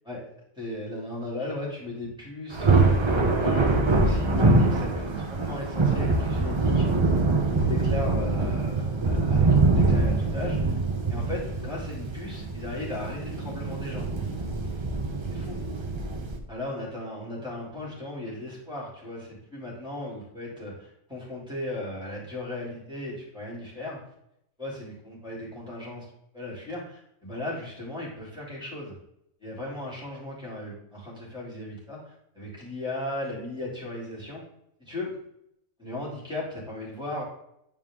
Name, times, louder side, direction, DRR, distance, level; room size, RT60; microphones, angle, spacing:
voice 1, 0.6-6.9 7.5-10.8 11.1-14.1 15.3-15.6 16.5-24.0 24.6-26.1 26.3-28.9 29.4-34.4 34.8-35.1 35.8-37.2, left 1 dB, 5° right, -5 dB, 2.9 m, -36 dB
Thunder, 2.5-16.4, right 3 dB, 30° right, 0.5 m, -24 dB
9.6 x 4.6 x 3.7 m, 0.77 s
omnidirectional pair, 1.5 m